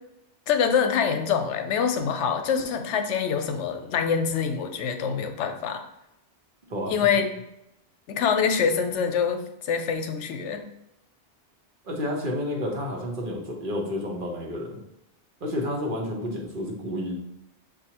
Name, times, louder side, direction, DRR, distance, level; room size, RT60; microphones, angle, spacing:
voice 1, 0.5-5.8 6.9-7.3 8.1-10.6, left 6 dB, 85° left, 6 dB, 0.9 m, -25 dB
voice 2, 11.8-14.8 15.4-17.1, left 1 dB, 50° right, -1 dB, 1.0 m, -30 dB
7.0 x 2.5 x 2.8 m, 0.83 s
omnidirectional pair, 1.2 m